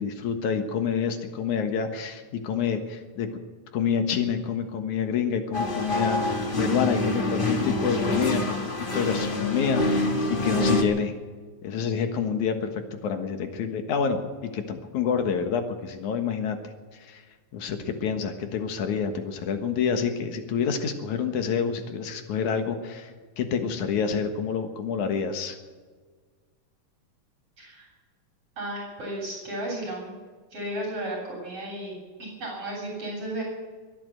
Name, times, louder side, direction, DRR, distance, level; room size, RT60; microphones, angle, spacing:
voice 1, 0.0-3.3 3.7-11.1 11.6-14.2 14.5-16.6 16.9-17.2 17.5-25.6, left 6 dB, 70° left, 7 dB, 2.8 m, -28 dB
sound 1, 5.5-10.8, left 2 dB, 55° left, 0.5 m, -26 dB
voice 2, 27.6-27.9 28.6-30.2 30.5-33.4, right 1 dB, 50° right, -2 dB, 4.2 m, -34 dB
24.0 x 8.8 x 6.6 m, 1.5 s
omnidirectional pair, 3.6 m